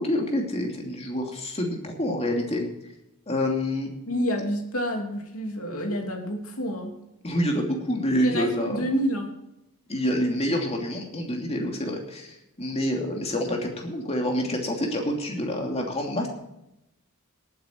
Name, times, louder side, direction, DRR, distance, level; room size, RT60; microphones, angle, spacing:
voice 1, 0.0-2.6 3.3-3.9 7.2-8.8 9.9-16.3, left 1 dB, 30° left, 1 dB, 2.9 m, -27 dB
voice 2, 4.1-7.0 8.2-9.3, equal, 70° left, 3 dB, 3.0 m, -28 dB
19.0 x 9.2 x 4.6 m, 0.87 s
head